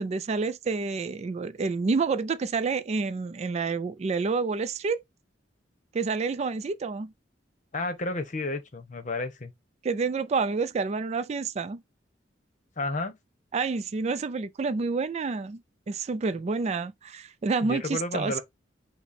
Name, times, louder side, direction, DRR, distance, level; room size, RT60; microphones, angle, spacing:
voice 1, 0.0-5.0 5.9-7.1 9.8-11.8 13.5-15.6 15.9-18.4, right 4 dB, 35° right, 0.4 m, -28 dB
voice 2, 7.7-9.5 12.8-13.1 17.6-18.4, left 2 dB, 45° left, 0.9 m, -31 dB
6.0 x 2.1 x 4.0 m
head